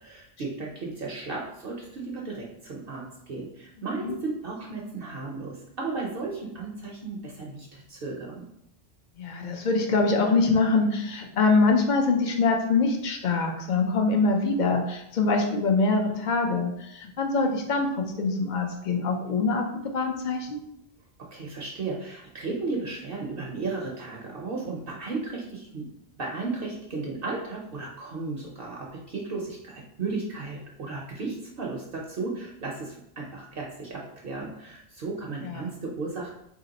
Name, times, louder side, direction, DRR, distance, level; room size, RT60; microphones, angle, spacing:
voice 1, 0.0-8.4 21.2-25.9 26.2-36.3, right 3 dB, 60° right, -2 dB, 0.8 m, -35 dB
voice 2, 9.2-17.9 18.2-19.6 19.9-20.6 35.4-35.7, left 3 dB, 50° left, 3 dB, 0.6 m, -24 dB
3.1 x 2.9 x 3.9 m, 0.78 s
omnidirectional pair, 1.2 m